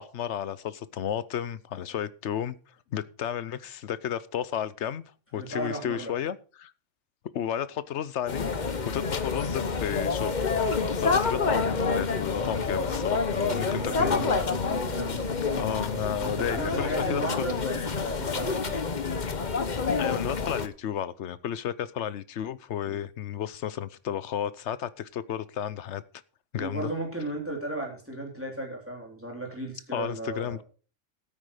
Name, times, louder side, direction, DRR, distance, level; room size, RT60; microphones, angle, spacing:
voice 1, 0.0-2.6 2.9-5.0 5.3-6.7 7.3-8.5 8.8-10.4 11.0-14.3 15.6-17.7 20.0-26.0 26.5-26.9 29.9-30.6, left 9 dB, 70° left, 1.1 m, -32 dB
voice 2, 5.3-6.1 13.6-15.2 16.2-19.0 22.9-23.0 26.6-30.6, right 1 dB, 10° right, 3.5 m, -35 dB
sound 1, 8.3-20.7, left 4 dB, 40° left, 1.1 m, -28 dB
sound 2, 11.2-16.6, right 8 dB, 85° right, 1.3 m, -44 dB
13.0 x 9.0 x 5.0 m
omnidirectional pair, 1.3 m